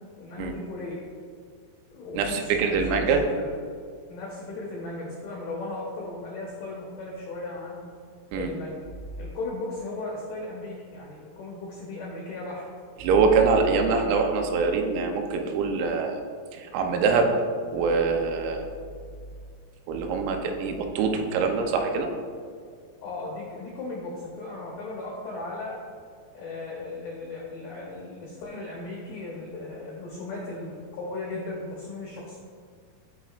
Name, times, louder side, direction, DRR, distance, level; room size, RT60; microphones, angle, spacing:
voice 1, 0.2-1.0 1.9-3.6 4.1-7.9 8.3-8.8 9.2-12.7 13.8-14.1 23.0-25.8 26.3-32.4, left 2 dB, 75° left, -4 dB, 2.1 m, -36 dB
voice 2, 2.2-3.2 8.3-8.5 13.0-16.2 16.5-17.3 17.7-18.7 19.9-22.1, right 4 dB, 90° right, 3 dB, 3.6 m, -24 dB
15.0 x 5.9 x 2.5 m, 2.1 s
omnidirectional pair, 5.9 m